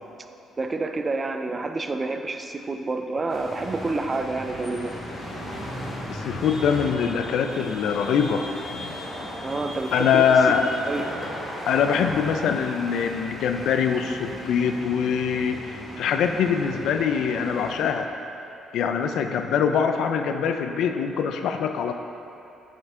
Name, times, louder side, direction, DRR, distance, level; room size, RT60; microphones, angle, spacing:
voice 1, 0.6-5.0 9.4-10.3 10.9-11.0, right 3 dB, 25° right, 7 dB, 0.4 m, -28 dB
sound 1, 3.3-17.9, left 1 dB, 40° left, 1.6 m, -36 dB
voice 2, 6.1-8.5 8.7-8.9 9.9-10.6 11.7-18.1 18.7-21.9, left 7 dB, 75° left, 6 dB, 0.4 m, -23 dB
7.4 x 5.7 x 3.6 m, 2.8 s
cardioid pair, 125°, 0 cm